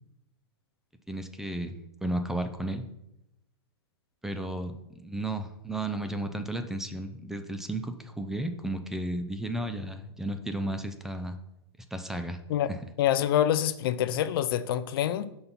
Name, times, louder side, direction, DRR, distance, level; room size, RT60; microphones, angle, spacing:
voice 1, 1.1-2.8 4.2-11.4 11.9-12.4, right 1 dB, 5° right, 7 dB, 0.5 m, -33 dB
voice 2, 13.0-15.3, left 11 dB, 55° left, 14 dB, 0.5 m, -26 dB
5.6 x 4.3 x 5.4 m, 0.87 s
hypercardioid pair, 120°, 14 cm